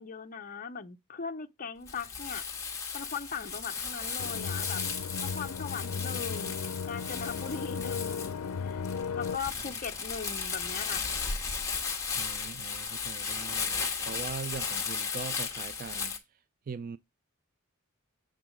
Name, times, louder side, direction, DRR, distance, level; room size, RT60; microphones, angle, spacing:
voice 1, 0.0-2.5 2.9-4.8 5.2-8.8 9.1-11.0, left 6 dB, 40° left, 0.6 m, -39 dB
Crumpling crinkling, 1.8-16.2, left 5 dB, 15° left, 1.4 m, -35 dB
sound 1, 4.2-9.4, left 5 dB, 85° left, 0.5 m, -36 dB
voice 2, 12.1-16.2 16.7-17.0, right 5 dB, 40° right, 0.4 m, -41 dB
8.3 x 3.8 x 6.0 m
head